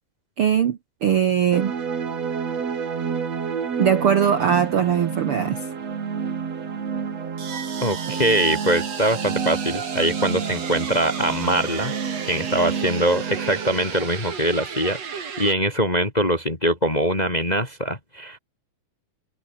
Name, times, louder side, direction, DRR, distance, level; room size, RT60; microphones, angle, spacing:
voice 1, 0.4-1.7 3.8-5.6, right 8 dB, 80° right, 1.2 m, -20 dB
sound 1, 1.5-15.5, right 6 dB, 45° right, 3.7 m, -29 dB
voice 2, 7.8-11.9 12.3-18.4, right 1 dB, 15° left, 1.6 m, -23 dB
omnidirectional pair, 4.5 m